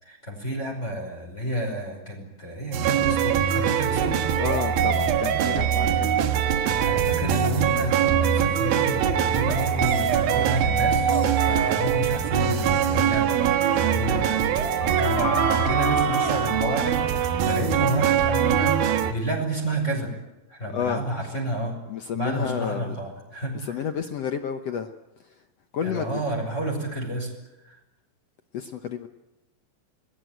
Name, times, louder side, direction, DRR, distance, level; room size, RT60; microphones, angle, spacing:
voice 1, 0.0-4.3 6.8-11.1 11.4-18.8 19.1-20.1 20.5-21.8 22.1-23.8 25.8-27.3 27.6-27.8, right 1 dB, 20° left, 0 dB, 5.5 m, -30 dB
sound 1, 2.7-19.1, right 8 dB, 75° right, 3.1 m, -23 dB
voice 2, 4.4-6.7 20.7-21.3 21.9-22.9 23.6-24.9 25.7-26.2 28.5-29.1, left 8 dB, 75° left, 7 dB, 1.4 m, -31 dB
sound 2, 14.6-17.6, equal, 60° left, 5.8 m, -32 dB
27.0 x 20.5 x 9.2 m, 0.98 s
omnidirectional pair, 4.3 m